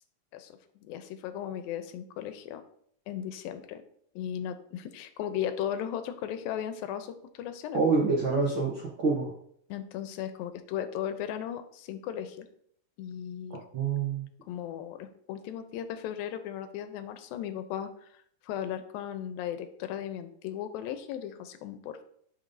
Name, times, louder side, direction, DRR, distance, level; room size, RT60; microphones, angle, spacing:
voice 1, 0.3-2.6 3.1-3.8 4.2-7.8 9.7-12.5 13.0-13.6 14.5-17.9 18.4-22.0, left 10 dB, 85° left, 9 dB, 2.4 m, -36 dB
voice 2, 7.7-9.3 13.7-14.3, right 4 dB, 80° right, -2 dB, 1.1 m, -26 dB
10.0 x 5.9 x 2.7 m, 0.65 s
omnidirectional pair, 4.1 m